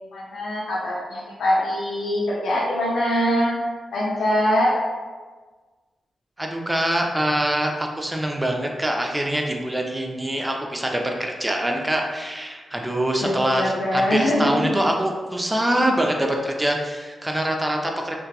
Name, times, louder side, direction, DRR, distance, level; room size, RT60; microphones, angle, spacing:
voice 1, 0.1-3.5 3.9-4.7 13.2-14.7, equal, 85° left, -6 dB, 0.5 m, -23 dB
voice 2, 6.4-18.2, right 1 dB, 15° right, 1 dB, 0.4 m, -24 dB
2.6 x 2.2 x 2.3 m, 1.4 s
cardioid pair, 50°, 0 cm